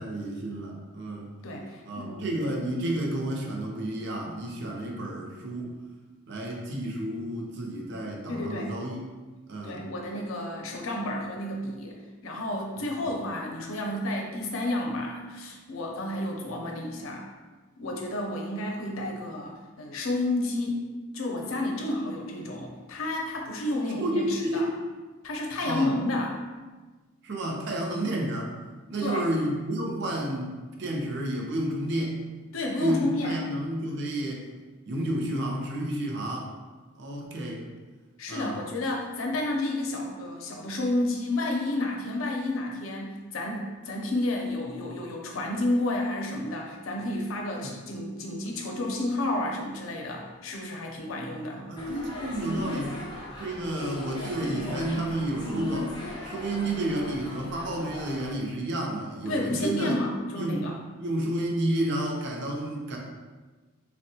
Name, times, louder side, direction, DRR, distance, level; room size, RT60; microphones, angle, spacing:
voice 1, 0.0-1.3 1.9-5.7 6.3-9.0 9.5-9.8 12.8-12.9 24.0-24.7 25.6-25.9 27.2-28.5 28.9-32.2 32.8-34.5 34.9-36.5 37.0-37.6 38.3-38.6 47.6-47.8 51.6-53.0 53.4-55.9 56.2-59.9 60.3-60.7 61.0-63.0, right 1 dB, 60° right, 0 dB, 0.5 m, -31 dB
voice 2, 1.4-2.3 8.3-8.7 9.6-17.3 17.8-20.9 21.1-24.7 25.2-26.4 29.0-29.2 32.5-33.4 38.2-51.6 59.3-60.8, left 1 dB, 80° left, 1 dB, 0.5 m, -31 dB
sound 1, 51.8-58.4, left 1 dB, 20° left, 0.4 m, -36 dB
3.5 x 2.1 x 2.7 m, 1.3 s
head